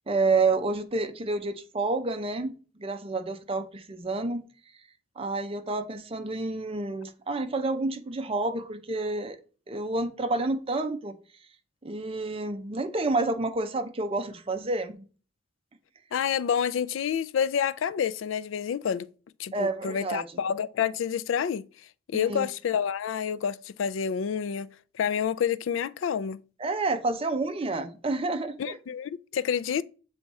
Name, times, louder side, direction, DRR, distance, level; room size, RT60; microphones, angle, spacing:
voice 1, 0.1-4.4 5.2-9.4 9.7-11.2 11.8-15.0 19.5-20.4 22.1-22.5 26.6-28.8, right 3 dB, 30° right, 0.6 m, -29 dB
voice 2, 16.1-19.1 19.4-21.7 22.1-26.4 28.6-29.8, left 7 dB, 80° left, 0.3 m, -28 dB
7.5 x 3.5 x 4.1 m
head